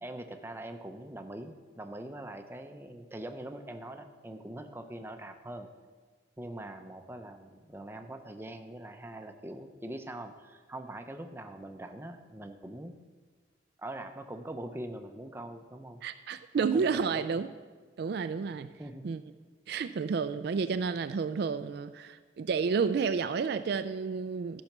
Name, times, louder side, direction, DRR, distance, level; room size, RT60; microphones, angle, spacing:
voice 1, 0.0-5.7 6.4-13.0 13.8-16.0 16.7-17.2 18.8-19.0 19.8-20.0, right 1 dB, 10° right, 6 dB, 0.6 m, -43 dB
voice 2, 16.0-17.5 18.0-18.7 19.0-19.2 19.7-24.6, right 5 dB, 55° right, 11 dB, 0.3 m, -30 dB
13.5 x 5.6 x 6.0 m, 1.5 s
head